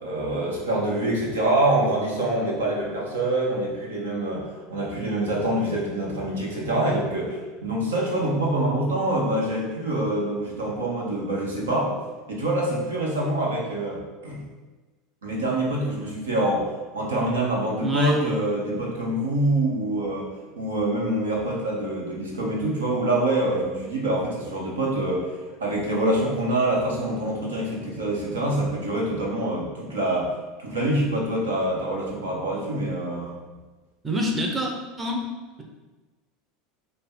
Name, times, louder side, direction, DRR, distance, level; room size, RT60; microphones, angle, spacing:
voice 1, 0.0-11.9 12.3-14.4 15.2-16.7 16.9-20.3 20.6-25.3 25.6-30.3 30.6-33.3, right 1 dB, 85° right, -3 dB, 1.0 m, -25 dB
voice 2, 17.8-18.2 34.0-34.7 35.0-35.2, equal, 20° right, 0 dB, 0.8 m, -26 dB
5.4 x 2.2 x 4.3 m, 1.2 s
hypercardioid pair, 85°, 0 cm